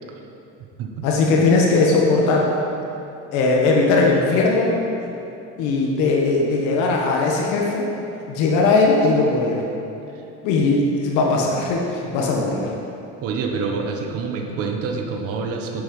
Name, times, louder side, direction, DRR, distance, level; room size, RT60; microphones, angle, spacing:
voice 1, 1.0-2.5 3.3-4.7 5.6-7.9 8.3-9.6 10.4-12.7, left 3 dB, 75° left, -1 dB, 1.4 m, -19 dB
voice 2, 13.2-15.8, right 4 dB, 50° right, 2 dB, 1.2 m, -26 dB
10.0 x 7.6 x 5.4 m, 2.8 s
cardioid pair, 175°, 30 cm